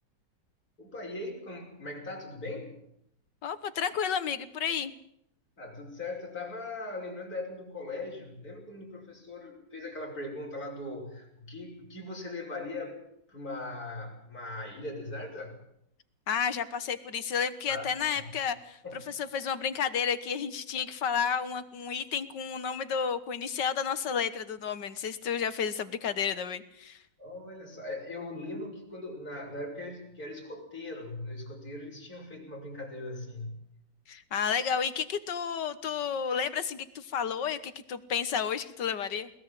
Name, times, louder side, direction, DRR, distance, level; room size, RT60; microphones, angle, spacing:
voice 1, 0.8-2.7 5.6-13.0 13.3-15.6 17.7-18.2 18.8-19.0 27.2-33.5, left 2 dB, 50° left, -1 dB, 6.4 m, -40 dB
voice 2, 3.4-4.9 16.3-27.0 34.1-39.3, left 7 dB, 75° left, 12 dB, 1.9 m, -31 dB
21.5 x 20.0 x 7.6 m, 0.73 s
omnidirectional pair, 1.9 m